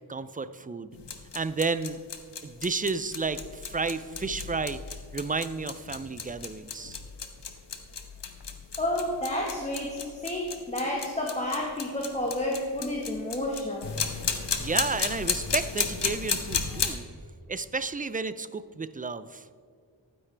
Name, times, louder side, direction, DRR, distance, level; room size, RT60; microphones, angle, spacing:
voice 1, 0.1-1.0 1.3-2.0 2.4-4.8 5.1-7.0 14.6-17.1 17.5-19.4, right 4 dB, 20° right, 13 dB, 0.3 m, -32 dB
sound 1, 0.9-17.0, left 6 dB, 65° left, 1.0 m, -34 dB
voice 2, 8.8-13.9, left 1 dB, 15° left, -2 dB, 1.3 m, -30 dB
12.0 x 9.7 x 3.3 m, 2.1 s
wide cardioid pair, 90°, 46 cm